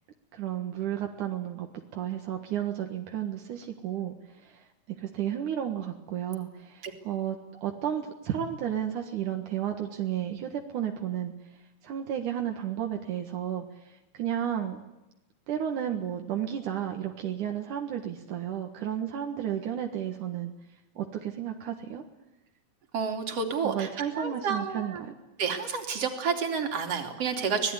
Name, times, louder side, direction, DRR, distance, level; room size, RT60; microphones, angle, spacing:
voice 1, 0.3-4.6 5.0-11.3 11.8-14.8 15.5-20.5 21.0-22.0 23.6-25.1, right 10 dB, 80° right, 3 dB, 3.2 m, -32 dB
voice 2, 22.9-25.0 25.4-27.7, right 5 dB, 50° right, 4 dB, 4.0 m, -30 dB
25.5 x 19.0 x 9.8 m, 0.96 s
omnidirectional pair, 3.5 m